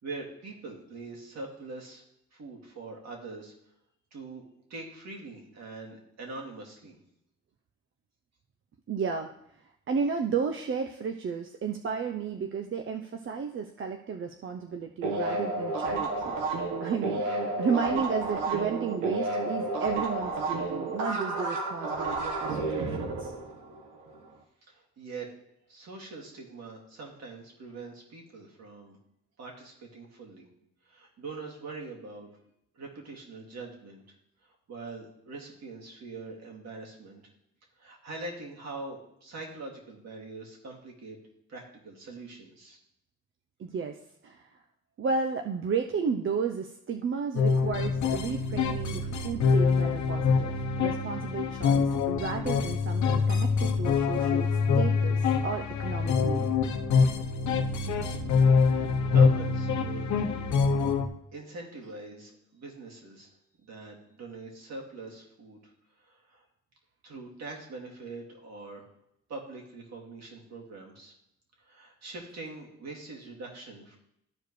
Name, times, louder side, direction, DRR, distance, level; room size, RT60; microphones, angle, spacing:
voice 1, 0.0-2.0 2.3-3.5 4.1-4.4 4.7-7.0 24.7-25.3 25.7-29.0 29.4-30.5 30.8-32.3 32.7-34.0 34.7-37.2 37.8-41.2 41.5-42.8 57.8-60.3 61.3-63.3 63.6-65.7 66.0-66.4 67.0-68.9 69.3-71.1 71.6-74.0, right 3 dB, 60° right, -1 dB, 2.4 m, -43 dB
voice 2, 8.9-9.3 9.9-16.4 16.8-23.3 43.6-44.0 44.2-44.6 45.0-56.5, right 5 dB, 45° right, 4 dB, 0.6 m, -33 dB
sound 1, 15.0-24.2, right 2 dB, 90° right, 1.3 m, -31 dB
sound 2, 47.3-61.1, left 5 dB, 70° left, 0.9 m, -25 dB
13.5 x 4.6 x 3.2 m, 0.80 s
cardioid pair, 90°, 30 cm